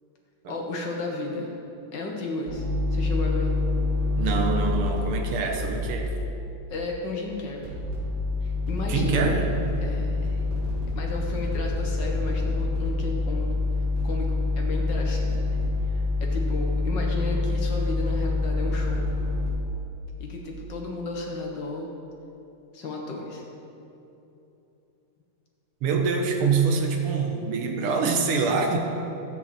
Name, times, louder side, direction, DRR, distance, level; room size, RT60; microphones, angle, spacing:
voice 1, 0.5-1.6 1.9-3.5 6.7-7.8 8.4-9.3 9.8-10.4 11.0-13.6 14.0-15.6 15.8-19.1 20.2-21.9 22.7-23.4, left 2 dB, 60° left, 0 dB, 1.8 m, -33 dB
sound 1, 2.5-6.2 7.6-19.5, left 3 dB, 40° right, 3.2 m, -26 dB
voice 2, 4.2-6.1 8.9-9.5 25.8-28.8, right 5 dB, 85° right, 3 dB, 2.0 m, -25 dB
13.0 x 8.8 x 4.3 m, 2.9 s
omnidirectional pair, 2.4 m